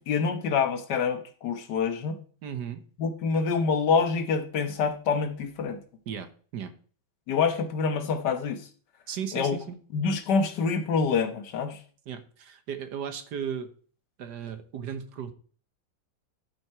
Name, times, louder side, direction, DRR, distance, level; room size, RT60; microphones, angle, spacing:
voice 1, 0.1-2.2 3.0-5.8 7.3-8.6 9.3-9.6 9.9-11.8, left 5 dB, 65° left, 9 dB, 1.6 m, -26 dB
voice 2, 2.4-2.8 6.1-6.3 6.5-6.7 9.1-9.8 12.1-13.7 14.2-15.3, right 8 dB, 65° right, 10 dB, 1.5 m, -35 dB
12.0 x 6.0 x 4.7 m, 0.43 s
omnidirectional pair, 2.1 m